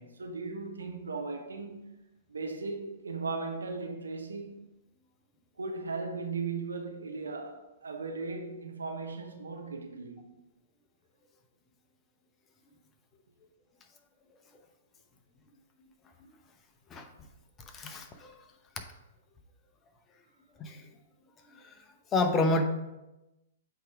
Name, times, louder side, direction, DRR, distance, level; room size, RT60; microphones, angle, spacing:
voice 1, 0.0-1.9 2.3-4.6 5.6-10.3, right 4 dB, 90° right, 0.9 m, -37 dB
voice 2, 17.7-18.3 20.6-20.8 21.6-21.7 22.1-22.6, left 2 dB, 25° left, 0.8 m, -28 dB
8.0 x 3.0 x 4.8 m
hypercardioid pair, 125°, 0 cm